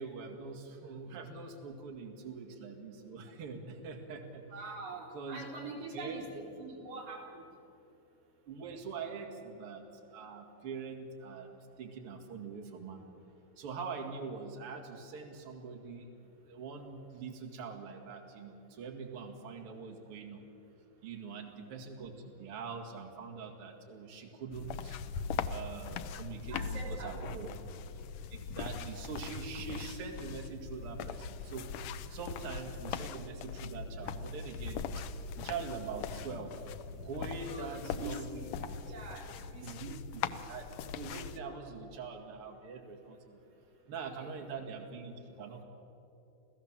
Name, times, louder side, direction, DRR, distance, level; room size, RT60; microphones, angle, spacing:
voice 1, 0.0-4.4 5.1-5.4 5.9-6.2 8.5-9.8 10.1-11.5 11.8-13.0 13.6-20.4 21.0-25.0 25.5-27.5 28.3-31.7 32.1-35.1 35.4-36.6 36.9-38.3 38.7-38.8 39.6-40.7 40.9-43.4 43.9-45.6, right 5 dB, 45° right, 2 dB, 2.7 m, -43 dB
voice 2, 4.5-7.4 21.1-21.3 26.5-27.5 37.4-40.0 44.1-44.4, right 3 dB, 65° right, -1 dB, 5.1 m, -45 dB
sound 1, 24.5-41.4, left 6 dB, 90° left, 1.5 m, -40 dB
28.0 x 16.0 x 7.5 m, 3.0 s
omnidirectional pair, 4.0 m